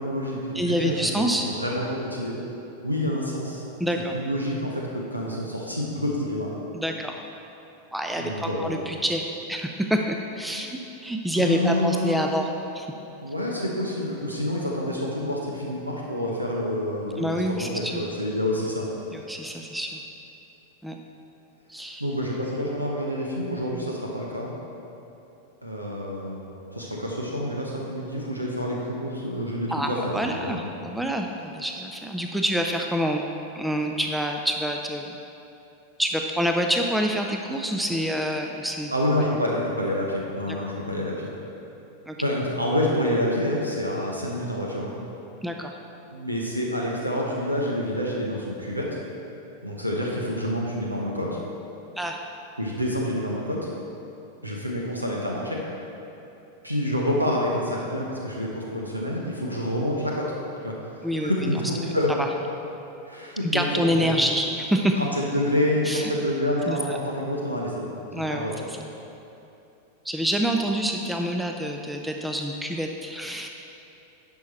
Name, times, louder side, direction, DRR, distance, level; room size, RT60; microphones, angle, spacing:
voice 1, 0.0-2.4 2.8-3.6 4.1-6.5 8.2-8.8 11.4-12.4 13.2-18.8 22.0-24.5 25.6-30.7 38.9-41.3 42.2-45.0 46.1-49.0 49.6-51.4 52.6-53.7 54.4-55.6 56.6-60.3 60.6-60.8 61.2-62.1 63.0-64.1 64.9-68.5, left 1 dB, 85° right, -3 dB, 1.0 m, -28 dB
voice 2, 0.5-1.5 3.8-4.1 6.7-7.2 7.9-12.5 12.7-12.9 17.2-18.0 19.1-20.0 20.8-21.0 21.7-22.0 29.7-33.2 33.6-35.2 36.0-38.9 42.1-42.2 45.4-45.7 52.0-52.2 61.0-61.5 61.8-61.9 63.4-65.0 65.9-66.1 66.7-66.8 68.1-68.9 70.0-73.5, equal, 5° right, 3 dB, 0.5 m, -27 dB
10.5 x 5.8 x 4.3 m, 2.9 s
figure-of-eight pair, 90°, 0 cm